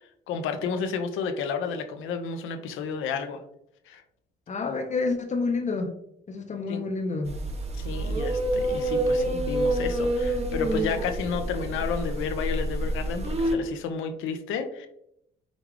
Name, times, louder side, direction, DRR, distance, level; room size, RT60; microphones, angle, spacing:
voice 1, 0.3-3.4 3.9-4.0 6.7-6.8 7.7-14.9, left 6 dB, 85° left, 7 dB, 0.5 m, -31 dB
voice 2, 4.5-5.9 6.3-7.3, left 3 dB, 35° left, 6 dB, 0.6 m, -28 dB
sound 1, 7.2-13.5, right 1 dB, 30° right, 0.8 m, -27 dB
5.0 x 2.3 x 3.2 m, 0.76 s
cardioid pair, 90°, 20 cm